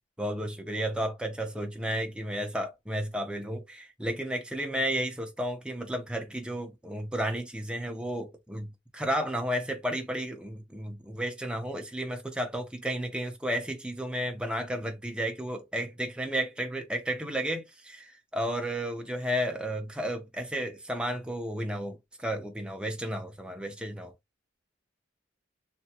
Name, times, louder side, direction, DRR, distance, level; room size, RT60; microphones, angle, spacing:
voice 1, 0.2-24.1, equal, 5° right, 0.5 m, -33 dB
3.3 x 2.1 x 2.7 m
head